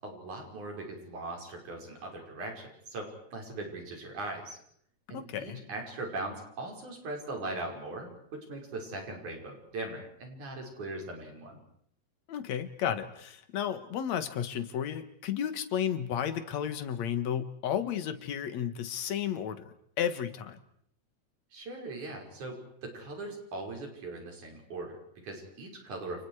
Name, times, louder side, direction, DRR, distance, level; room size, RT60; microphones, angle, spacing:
voice 1, 0.0-4.6 5.1-11.6 21.5-26.2, right 2 dB, 80° right, 1 dB, 7.0 m, -40 dB
voice 2, 5.1-5.6 12.3-20.6, left 9 dB, 65° left, 11 dB, 2.7 m, -33 dB
30.0 x 29.0 x 4.9 m, 0.67 s
omnidirectional pair, 3.4 m